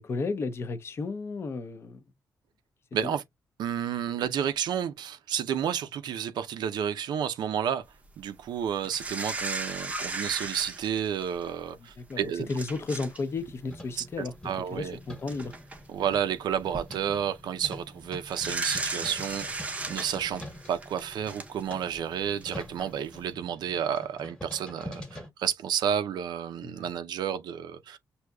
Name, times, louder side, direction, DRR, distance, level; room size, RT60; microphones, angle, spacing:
voice 1, 0.0-2.0 3.0-3.1 11.8-14.4 14.7-15.5 26.6-26.9, left 3 dB, 35° left, 0.6 m, -33 dB
voice 2, 2.9-3.2 3.6-7.8 8.2-12.5 14.0-14.1 14.4-15.0 15.9-20.4 20.7-28.0, right 9 dB, 80° right, 0.5 m, -31 dB
sound 1, 8.8-11.5 12.1-12.2 12.5-13.2 13.5-13.7 14.8-14.9 15.3-15.8 16.5-16.8 18.3-21.9 22.4-22.5, right 3 dB, 20° right, 0.6 m, -35 dB
sound 2, 13.2-25.3, left 1 dB, 10° left, 1.1 m, -46 dB
6.1 x 2.7 x 2.2 m
wide cardioid pair, 170°, 7 cm